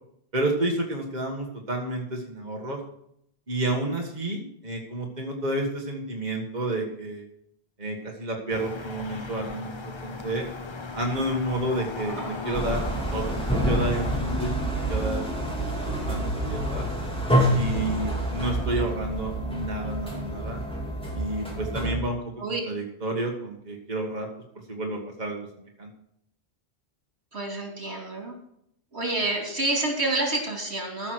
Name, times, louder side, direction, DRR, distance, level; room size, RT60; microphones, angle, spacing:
voice 1, 0.3-2.8 3.5-7.2 7.8-10.5 10.9-12.8 13.1-15.6 16.0-16.9 17.5-20.6 21.1-22.3 22.7-24.3 24.7-25.5 25.8-25.9, right 1 dB, 40° right, 0 dB, 1.8 m, -30 dB
sound 1, 8.5-14.2, left 4 dB, 30° left, 0.7 m, -37 dB
voice 2, 12.2-12.7 22.4-22.6 27.3-28.3 28.9-31.1, right 2 dB, 80° right, 1 dB, 3.3 m, -29 dB
sound 2, 12.5-22.0, right 1 dB, 5° left, 2.5 m, -27 dB
15.0 x 6.1 x 6.2 m, 0.74 s
omnidirectional pair, 1.1 m